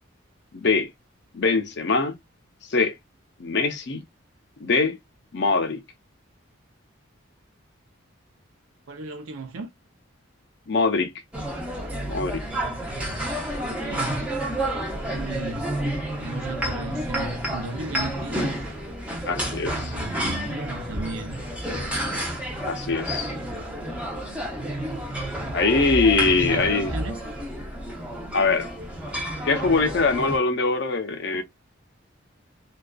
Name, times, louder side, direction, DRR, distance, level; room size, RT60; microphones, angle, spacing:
voice 1, 0.5-0.9 1.3-2.2 2.7-3.0 3.4-4.0 4.6-5.0 5.3-5.8 10.7-11.1 12.1-12.4 19.3-19.9 22.6-23.3 25.5-26.9 28.3-28.7 29.5-31.4, left 4 dB, 55° left, 0.5 m, -22 dB
voice 2, 8.9-9.7 12.5-14.3 14.6-15.7 16.2-18.7 19.5-21.4 25.8-27.2, right 3 dB, 80° right, 0.5 m, -36 dB
sound 1, 11.3-30.4, right 1 dB, 5° right, 0.6 m, -30 dB
2.4 x 2.3 x 2.2 m
head